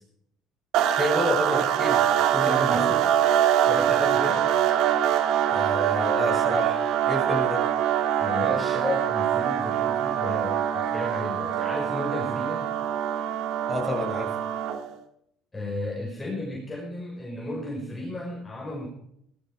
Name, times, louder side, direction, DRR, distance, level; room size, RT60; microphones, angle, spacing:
sound 1, 0.7-14.9, right 10 dB, 70° right, 1.8 m, -24 dB
voice 1, 1.0-3.0 5.5-6.8 7.1-7.6 13.7-14.3, left 1 dB, 5° right, 1 dB, 7.3 m, -29 dB
voice 2, 2.3-2.9 3.6-4.4 8.2-12.7 15.5-18.9, left 1 dB, 15° left, -3 dB, 5.3 m, -33 dB
18.0 x 14.0 x 5.0 m, 0.73 s
cardioid pair, 110°, 0 cm